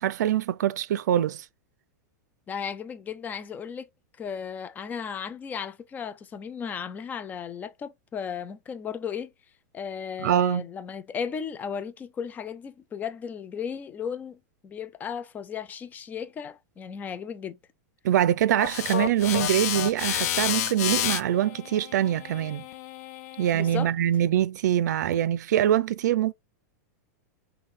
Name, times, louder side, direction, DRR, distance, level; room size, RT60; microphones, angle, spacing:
voice 1, 0.0-1.5 10.2-10.6 18.0-22.6 23.4-26.3, right 11 dB, 85° right, 0.4 m, -24 dB
voice 2, 2.5-3.9 4.2-9.3 9.7-17.6 23.5-23.9, left 7 dB, 20° left, 0.5 m, -35 dB
sound 1, 18.6-23.7, left 11 dB, 65° left, 0.6 m, -30 dB
5.6 x 2.2 x 3.2 m
supercardioid pair, 140°, 9 cm